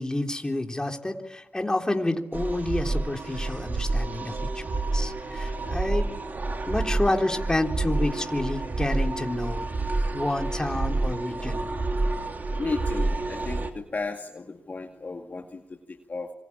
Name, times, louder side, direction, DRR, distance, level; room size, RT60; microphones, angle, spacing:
voice 1, 0.0-4.6 4.9-6.1 6.7-9.6 10.1-11.7, left 1 dB, 15° left, 3 dB, 3.4 m, -29 dB
sound 1, 2.3-13.7, right 2 dB, 45° right, 3.0 m, -29 dB
voice 2, 12.6-16.3, left 3 dB, 40° left, 3 dB, 2.1 m, -34 dB
26.5 x 24.5 x 8.6 m, 0.91 s
cardioid pair, 60°, 4 cm